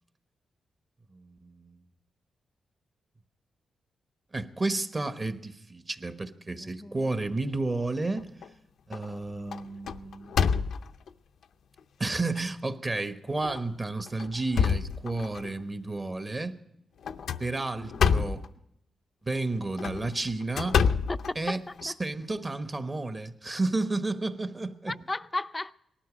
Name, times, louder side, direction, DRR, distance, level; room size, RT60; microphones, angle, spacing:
voice 1, 1.1-1.8 4.3-8.3 8.9-10.3 12.0-16.6 17.4-18.4 19.2-20.8 21.3-24.9, right 2 dB, 25° right, 1.1 m, -32 dB
voice 2, 6.6-7.1 21.1-21.6 21.9-22.0 24.9-25.7, left 2 dB, 20° left, 0.5 m, -34 dB
sound 1, 7.9-8.5 8.9-9.2 9.5-11.1 11.8-11.9 12.4-12.5 13.4-13.6 14.1-15.5 17.0-18.5 19.6-21.9, left 6 dB, 80° left, 0.6 m, -28 dB
19.0 x 13.0 x 5.0 m
cardioid pair, 90°, 0 cm